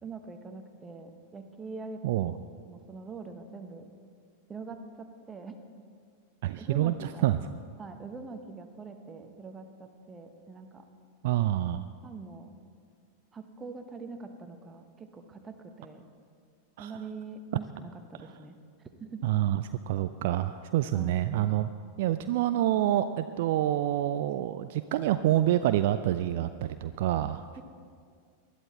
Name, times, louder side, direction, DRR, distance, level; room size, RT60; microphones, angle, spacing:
voice 1, 0.0-2.0 2.5-3.9 4.5-5.6 6.6-7.3 7.8-10.8 12.0-12.5 13.3-16.0 16.8-18.5 19.0-19.2 20.9-21.2 27.6-27.7, right 4 dB, 20° right, 6 dB, 1.2 m, -43 dB
voice 2, 2.0-2.4 6.4-7.4 11.2-11.9 16.8-16.9 18.2-18.3 19.2-21.7 22.0-27.4, right 13 dB, 50° right, 11 dB, 0.4 m, -27 dB
19.5 x 12.0 x 4.2 m, 2.1 s
figure-of-eight pair, 90°, 0 cm